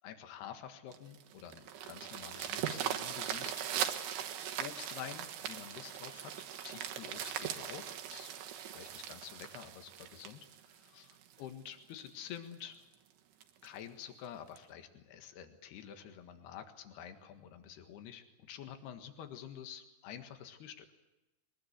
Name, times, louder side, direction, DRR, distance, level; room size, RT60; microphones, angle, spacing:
voice 1, 0.0-4.0 4.6-8.3 8.7-12.8 13.6-20.9, left 9 dB, 75° left, 6 dB, 3.7 m, -49 dB
sound 1, 0.9-11.4 12.0-12.1 12.5-12.6 12.9-13.0 13.4-13.7 14.6-14.7, right 10 dB, 80° right, 3.4 m, -40 dB
23.0 x 20.0 x 8.3 m, 1.0 s
omnidirectional pair, 4.8 m